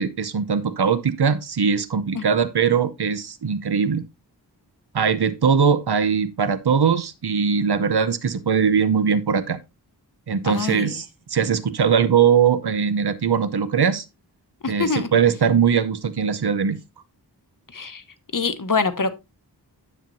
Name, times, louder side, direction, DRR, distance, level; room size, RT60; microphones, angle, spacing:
voice 1, 0.0-4.0 4.9-9.6 10.3-14.0 14.7-16.8, right 6 dB, 70° right, 0.8 m, -21 dB
voice 2, 10.4-10.9 14.6-15.1 17.7-18.0 18.3-19.1, left 4 dB, 50° left, 1.0 m, -24 dB
10.0 x 7.3 x 2.6 m
wide cardioid pair, 65°, 41 cm